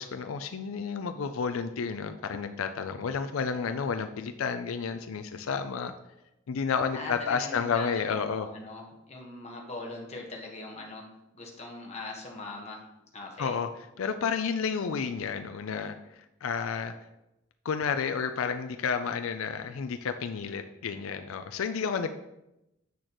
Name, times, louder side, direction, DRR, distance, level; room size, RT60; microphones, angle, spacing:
voice 1, 0.0-5.9 6.5-8.5 13.4-13.7 14.0-15.9 16.4-16.9 17.6-22.1, left 6 dB, 85° left, 8 dB, 0.4 m, -31 dB
voice 2, 6.9-11.0 11.3-12.8 13.1-13.6, left 2 dB, 30° left, -1 dB, 1.3 m, -41 dB
8.2 x 6.4 x 3.0 m, 0.89 s
head